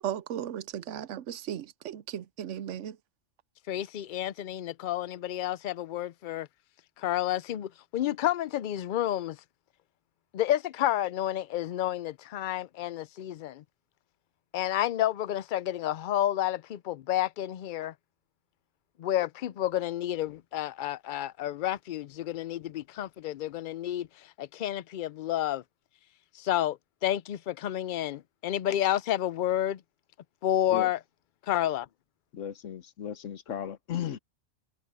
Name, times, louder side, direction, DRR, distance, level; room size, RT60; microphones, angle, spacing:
voice 1, 0.0-3.0, right 10 dB, 80° right, 1.0 m, -36 dB
voice 2, 3.7-6.5 7.0-9.4 10.3-13.6 14.5-17.9 19.0-24.1 24.4-25.6 26.3-26.8 27.0-29.8 30.4-31.0 31.5-31.9, left 12 dB, 60° left, 0.5 m, -30 dB
voice 3, 32.3-34.2, left 9 dB, 90° left, 1.3 m, -35 dB
omnidirectional pair, 1.2 m